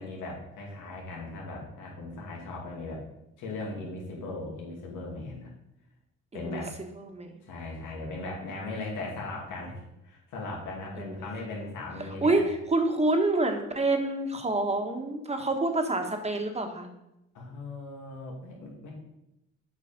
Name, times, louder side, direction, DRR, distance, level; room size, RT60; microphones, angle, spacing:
voice 1, 0.0-3.0 3.4-5.5 6.3-6.7 7.4-12.4 17.3-18.9, left 2 dB, 85° left, -2 dB, 2.6 m, -38 dB
voice 2, 6.3-6.6 7.0-7.3 11.0-11.1 12.2-12.4 12.7-16.9, right 2 dB, 20° right, 4 dB, 1.4 m, -27 dB
8.0 x 5.2 x 5.2 m, 0.88 s
cardioid pair, 90°, 30 cm